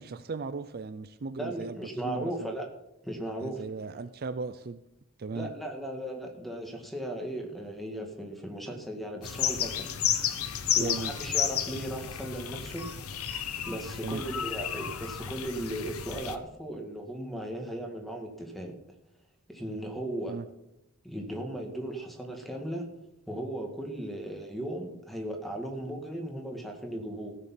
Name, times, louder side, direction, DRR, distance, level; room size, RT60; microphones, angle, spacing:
voice 1, 0.0-1.8 2.0-2.5 3.4-4.8 5.2-5.5 10.8-11.3 14.0-14.2 20.3-20.5, right 4 dB, 45° right, 12 dB, 0.4 m, -37 dB
voice 2, 1.4-2.7 3.0-3.6 5.3-9.9 10.2-10.4 10.7-12.9 13.6-18.7 19.5-20.4 21.0-22.9 23.3-27.3, right 1 dB, ahead, 3 dB, 1.8 m, -36 dB
sound 1, 9.2-16.4, left 9 dB, 80° left, 1.0 m, -32 dB
15.5 x 6.8 x 7.3 m, 0.87 s
head